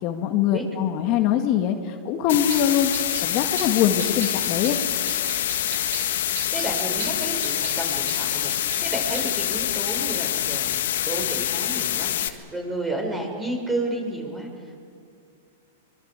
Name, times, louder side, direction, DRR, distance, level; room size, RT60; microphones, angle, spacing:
voice 1, 0.0-2.9 3.2-4.8, left 10 dB, 45° left, 4 dB, 1.9 m, -23 dB
sound 1, 2.3-12.3, left 11 dB, 70° left, 1.5 m, -26 dB
sound 2, 2.3-9.3, right 5 dB, 70° right, 5.2 m, -39 dB
voice 2, 6.5-8.5 8.8-14.8, right 1 dB, 10° right, 2 dB, 6.2 m, -31 dB
24.5 x 22.0 x 8.3 m, 2.5 s
hypercardioid pair, 120°, 0 cm